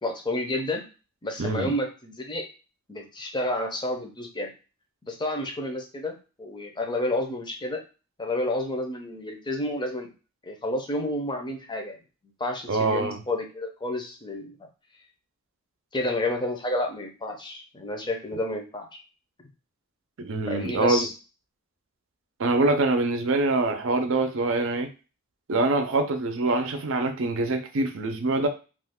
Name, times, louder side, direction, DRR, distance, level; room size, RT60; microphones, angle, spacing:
voice 1, 0.0-0.8 1.2-2.4 2.9-4.5 5.0-7.8 8.2-10.1 10.4-12.0 12.4-14.6 15.9-19.0 20.5-21.1, left 1 dB, 20° left, 0.6 m, -30 dB
voice 2, 1.4-1.7 12.7-13.2 20.2-21.1 22.4-24.9 25.5-28.5, right 2 dB, 70° right, 0.5 m, -24 dB
2.4 x 2.3 x 3.5 m
head